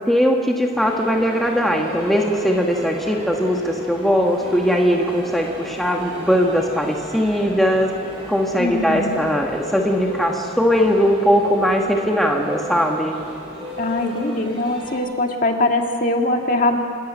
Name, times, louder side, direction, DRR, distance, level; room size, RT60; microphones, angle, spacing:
voice 1, 0.1-7.9 8.3-13.2, equal, ahead, 0 dB, 1.3 m, -19 dB
sound 1, 0.7-15.0, left 1 dB, 25° right, 7.3 m, -35 dB
voice 2, 8.6-9.2 13.8-16.8, left 2 dB, 40° left, 3 dB, 1.9 m, -21 dB
27.0 x 13.5 x 9.2 m, 2.3 s
head